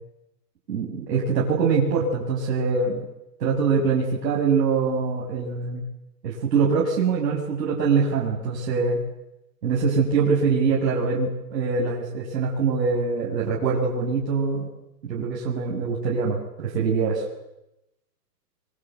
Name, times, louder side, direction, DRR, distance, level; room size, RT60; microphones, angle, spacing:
voice 1, 0.7-3.0 3.4-5.8 6.2-9.0 9.6-14.7 15.0-17.2, right 5 dB, 75° right, -4 dB, 7.4 m, -23 dB
26.0 x 24.0 x 8.3 m, 0.92 s
hypercardioid pair, 175°, 49 cm